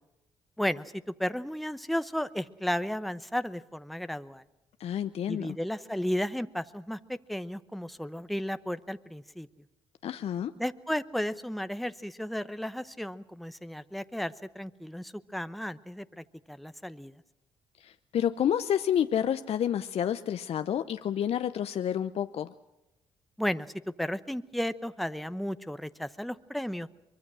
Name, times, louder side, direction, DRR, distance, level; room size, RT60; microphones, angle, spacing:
voice 1, 0.6-0.9 1.2-4.4 5.3-9.5 10.6-17.2 23.4-23.7 24.0-26.9, equal, ahead, 12 dB, 0.9 m, -34 dB
voice 2, 4.8-5.6 10.0-10.5 17.8-22.5, left 9 dB, 60° left, 11 dB, 0.7 m, -29 dB
23.5 x 22.5 x 6.3 m, 0.95 s
hypercardioid pair, 50°, 12 cm